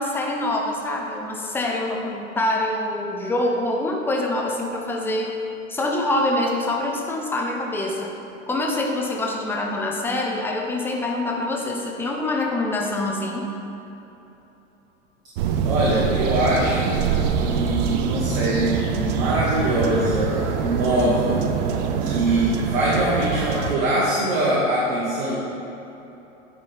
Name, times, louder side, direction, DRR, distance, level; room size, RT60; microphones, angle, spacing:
voice 1, 0.0-5.3 5.7-8.1 8.5-13.4, left 1 dB, 5° left, 0 dB, 0.6 m, -25 dB
sound 1, 15.4-23.7, right 7 dB, 35° right, 0.5 m, -24 dB
voice 2, 15.6-17.0 17.4-21.5 22.0-25.3, right 1 dB, 50° right, -6 dB, 1.5 m, -22 dB
9.3 x 4.4 x 4.0 m, 3.0 s
figure-of-eight pair, 90°, 39 cm